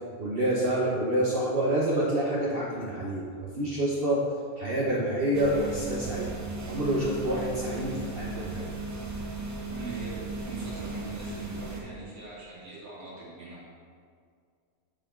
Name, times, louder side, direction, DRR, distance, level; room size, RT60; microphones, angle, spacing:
voice 1, 0.2-4.2 4.6-6.4 6.7-8.8, right 1 dB, 45° right, -5 dB, 1.0 m, -28 dB
sound 1, 5.3-11.8, right 2 dB, 25° right, 0.4 m, -36 dB
voice 2, 9.7-13.7, right 4 dB, 75° right, -8 dB, 2.7 m, -41 dB
10.0 x 5.0 x 3.7 m, 2.2 s
omnidirectional pair, 1.5 m